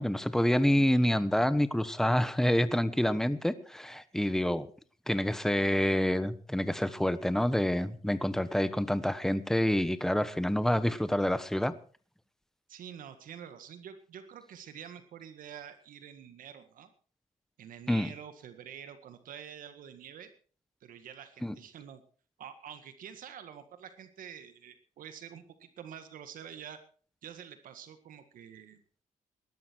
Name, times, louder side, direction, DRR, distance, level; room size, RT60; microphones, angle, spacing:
voice 1, 0.0-4.7 5.1-11.7 17.9-18.1 21.4-21.5, left 1 dB, 5° left, 14 dB, 1.1 m, -27 dB
voice 2, 12.7-16.9 17.6-20.3 20.8-22.0 22.4-26.8 27.2-28.8, right 8 dB, 85° right, 9 dB, 1.8 m, -47 dB
18.5 x 12.0 x 4.6 m, 0.41 s
cardioid pair, 95°, 14 cm